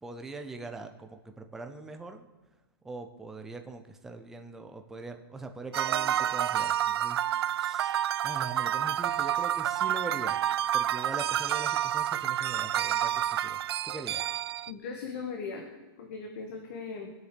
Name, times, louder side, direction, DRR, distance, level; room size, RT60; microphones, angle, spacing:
voice 1, 0.0-2.3 2.8-10.4 10.7-14.3, right 3 dB, 5° right, 5 dB, 0.5 m, -42 dB
sound 1, 5.7-14.7, right 11 dB, 85° right, 0.4 m, -29 dB
voice 2, 14.7-15.7 16.0-17.1, left 5 dB, 40° left, 2 dB, 1.7 m, -38 dB
21.0 x 8.1 x 6.7 m, 1.2 s
supercardioid pair, 180°, 13 cm